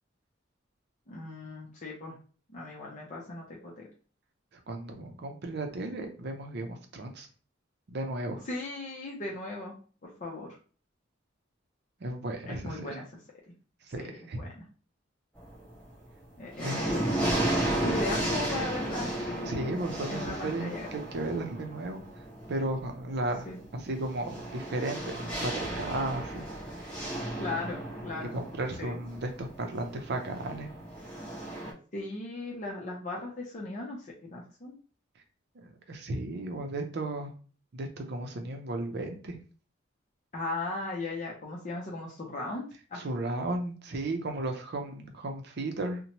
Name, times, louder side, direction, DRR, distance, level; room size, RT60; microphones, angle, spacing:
voice 1, 1.1-2.1 2.5-3.9 8.5-9.7 10.0-10.5 12.5-13.1 14.0-14.6 16.4-17.2 17.8-19.8 20.1-20.9 23.5-23.6 27.4-28.3 28.8-29.0 31.9-34.7 40.3-42.6 42.9-43.0, left 2 dB, 40° left, -3 dB, 0.6 m, -37 dB
voice 2, 4.7-7.3 7.9-8.4 12.0-13.0 13.9-14.4 16.6-16.8 19.4-22.0 22.5-23.5 23.7-26.4 26.8-27.0 28.2-30.7 35.6-37.3 37.7-39.4 42.9-46.0, right 2 dB, 60° right, 4 dB, 0.5 m, -34 dB
sound 1, 15.4-15.9 16.3-31.7, right 1 dB, 5° left, 1.0 m, -34 dB
2.8 x 2.1 x 2.9 m, 0.38 s
head